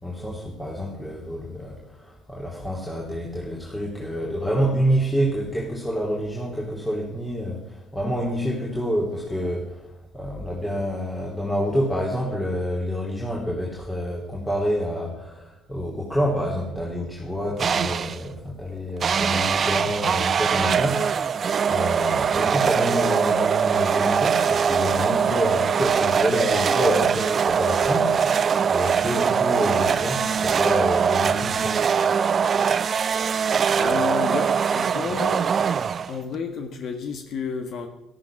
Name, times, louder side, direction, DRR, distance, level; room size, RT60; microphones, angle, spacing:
voice 1, 0.0-21.1 21.6-31.8, equal, 10° left, -3 dB, 3.1 m, -27 dB
sound 1, 17.6-18.3 19.0-36.4, right 7 dB, 40° right, 0.5 m, -22 dB
voice 2, 33.7-35.5 36.0-37.9, left 6 dB, 50° left, 6 dB, 1.6 m, -31 dB
13.0 x 12.5 x 6.0 m, 0.90 s
figure-of-eight pair, 55°, 0 cm